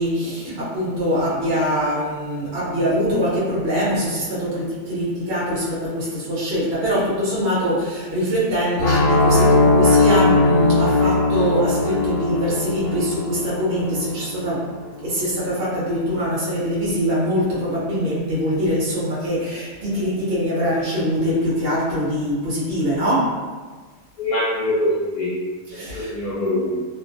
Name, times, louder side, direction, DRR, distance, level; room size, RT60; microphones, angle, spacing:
voice 1, 0.0-14.8 15.0-23.5 25.7-26.1, equal, 60° right, -8 dB, 0.6 m, -23 dB
sound 1, 8.8-14.7, left 3 dB, 90° left, 1.3 m, -19 dB
voice 2, 24.2-25.3 25.9-26.8, left 1 dB, 65° left, -7 dB, 1.0 m, -23 dB
2.7 x 2.5 x 2.5 m, 1.4 s
omnidirectional pair, 1.9 m